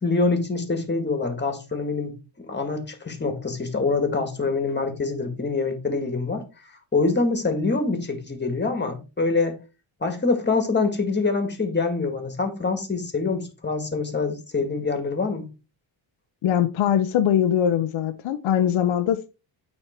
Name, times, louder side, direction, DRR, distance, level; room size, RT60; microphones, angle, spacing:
voice 1, 0.0-2.1 2.4-6.4 6.9-9.6 10.0-15.5, left 3 dB, 20° left, 1.9 m, -25 dB
voice 2, 16.4-19.3, left 9 dB, 70° left, 0.8 m, -22 dB
9.0 x 4.3 x 4.4 m
cardioid pair, 135°, 49 cm